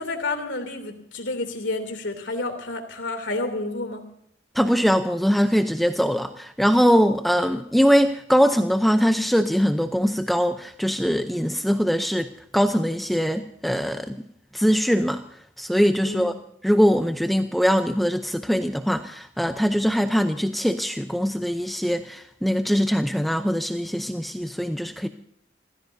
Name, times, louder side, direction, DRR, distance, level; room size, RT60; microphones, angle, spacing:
voice 1, 0.0-4.1 16.0-16.3, left 2 dB, 75° left, 6 dB, 3.0 m, -30 dB
voice 2, 4.5-14.2 14.5-15.2 15.6-16.3 16.6-25.1, equal, ahead, 7 dB, 0.6 m, -22 dB
28.5 x 15.5 x 2.7 m, 0.67 s
head